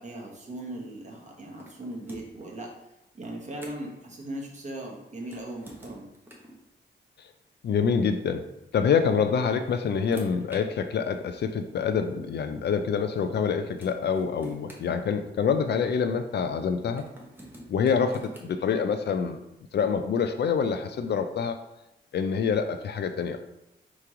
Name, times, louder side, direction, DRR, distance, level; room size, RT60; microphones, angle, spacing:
voice 1, 0.0-2.7 3.1-6.0, right 1 dB, 35° right, -1 dB, 1.1 m, -38 dB
sound 1, 1.6-2.5 3.2-4.0 5.2-6.6 7.9-8.0 9.2-10.6 11.6-11.7 13.3-13.4 13.8-15.6 17.0-18.5, equal, 10° right, 0.9 m, -48 dB
voice 2, 7.6-8.5 8.7-17.1 17.7-19.4 19.7-21.6 22.1-23.4, left 6 dB, 60° left, 8 dB, 0.4 m, -26 dB
3.4 x 3.1 x 4.8 m, 0.91 s
cardioid pair, 105°, 20 cm